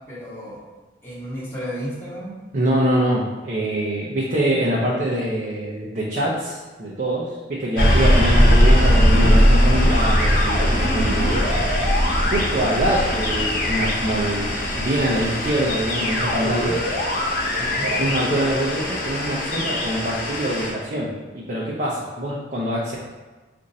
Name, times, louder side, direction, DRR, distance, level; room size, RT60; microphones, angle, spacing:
voice 1, 0.1-0.6 1.0-2.3 11.2-11.6 12.6-12.9 17.5-17.9, equal, 15° left, -8 dB, 1.0 m, -33 dB
voice 2, 2.5-11.4 12.3-16.8 17.8-23.0, right 1 dB, 45° right, -5 dB, 0.6 m, -24 dB
sound 1, 7.8-20.7, equal, 50° left, 0.9 m, -20 dB
4.3 x 2.6 x 4.1 m, 1.3 s
head